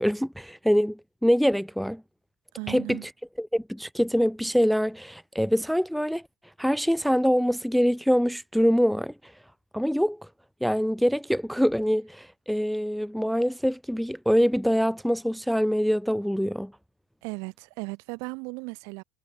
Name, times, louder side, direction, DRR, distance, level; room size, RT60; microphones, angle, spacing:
voice 1, 0.0-2.0 2.7-3.1 3.4-6.2 6.6-9.1 9.7-10.2 10.6-16.7, equal, ahead, 0.5 m, -24 dB
voice 2, 2.6-3.1 17.2-19.0, right 31 dB, 65° right, 3.3 m, -36 dB
supercardioid pair, 105°, 6 cm